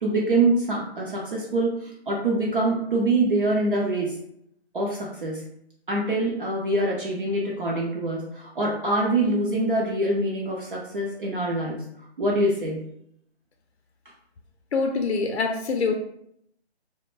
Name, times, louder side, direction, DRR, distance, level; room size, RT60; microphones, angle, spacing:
voice 1, 0.0-4.1 4.7-5.4 5.9-11.9 12.2-12.8, right 2 dB, 50° right, -3 dB, 0.6 m, -25 dB
voice 2, 14.7-16.0, left 4 dB, 70° left, 4 dB, 0.5 m, -24 dB
2.4 x 2.1 x 3.0 m, 0.72 s
hypercardioid pair, 160°, 33 cm